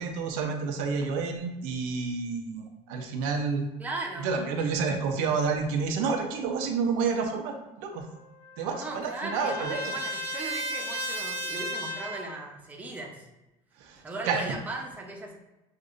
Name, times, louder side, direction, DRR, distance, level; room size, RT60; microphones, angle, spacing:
voice 1, 0.0-3.6 4.2-8.0 8.6-9.9 13.8-14.5, right 5 dB, 85° right, 4 dB, 0.7 m, -29 dB
voice 2, 3.8-4.4 8.7-13.3 14.0-15.3, right 2 dB, 10° right, -1 dB, 0.7 m, -37 dB
Trumpet, 7.9-12.3, equal, 45° right, 0.8 m, -35 dB
6.4 x 2.6 x 2.5 m, 0.99 s
cardioid pair, 140°, 13 cm